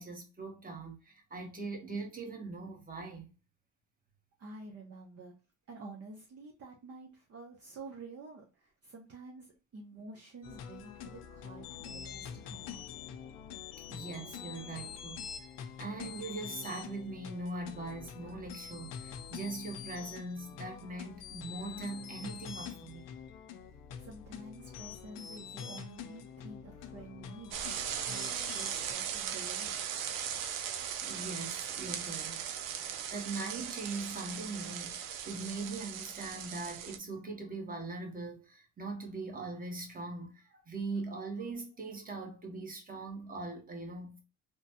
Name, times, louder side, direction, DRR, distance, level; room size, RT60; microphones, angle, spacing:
voice 1, 0.0-3.3 13.9-15.2 15.8-23.1 31.0-44.2, right 3 dB, 25° right, 1.2 m, -41 dB
voice 2, 4.4-5.3 5.7-13.0 24.0-27.7 28.1-29.8, right 3 dB, 50° right, 0.8 m, -49 dB
sound 1, 10.4-28.9, left 7 dB, 85° left, 0.6 m, -45 dB
sound 2, 27.5-37.0, right 9 dB, 85° right, 0.5 m, -38 dB
3.1 x 2.2 x 2.7 m
cardioid pair, 85°, 32 cm